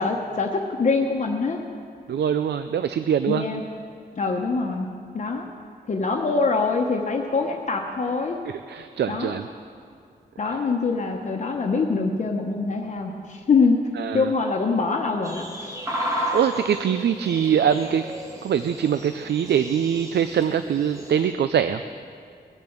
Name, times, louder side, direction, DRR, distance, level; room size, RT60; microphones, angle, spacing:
voice 1, 0.0-1.6 3.3-3.6 4.2-4.9 5.1-5.5 5.9-8.4 9.1-9.4 10.4-13.8 14.1-15.8 16.2-16.3, left 4 dB, 40° left, 1 dB, 1.0 m, -24 dB
voice 2, 2.1-3.4 8.7-9.5 14.0-14.3 16.3-18.1 18.4-21.8, right 8 dB, 80° right, 10 dB, 0.5 m, -23 dB
sound 1, 15.2-21.3, equal, 20° right, 1.8 m, -33 dB
21.0 x 7.0 x 8.0 m, 2.2 s
wide cardioid pair, 170°, 18 cm